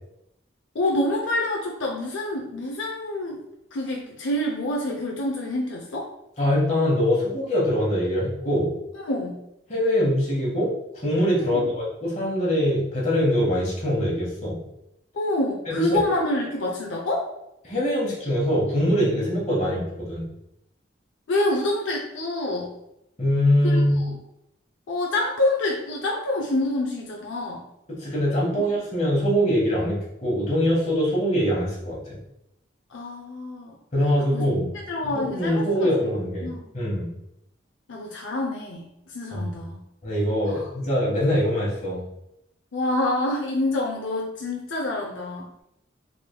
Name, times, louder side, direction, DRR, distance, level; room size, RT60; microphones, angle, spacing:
voice 1, 0.7-3.4 3.7-6.1 9.1-9.4 11.4-11.7 15.1-17.3 21.3-22.7 23.6-24.2 24.9-27.6 28.5-28.6 32.9-33.8 34.2-34.4 34.9-35.9 36.4-36.6 37.9-39.8 40.5-40.7 42.7-45.5, left 1 dB, 80° left, -1 dB, 0.6 m, -27 dB
voice 2, 6.4-8.7 9.7-14.6 15.7-16.0 17.6-20.3 23.2-24.0 27.9-32.2 33.9-34.7 35.0-37.1 39.3-39.5 40.0-42.0, equal, 35° left, -5 dB, 1.3 m, -23 dB
3.9 x 3.4 x 2.2 m, 0.82 s
head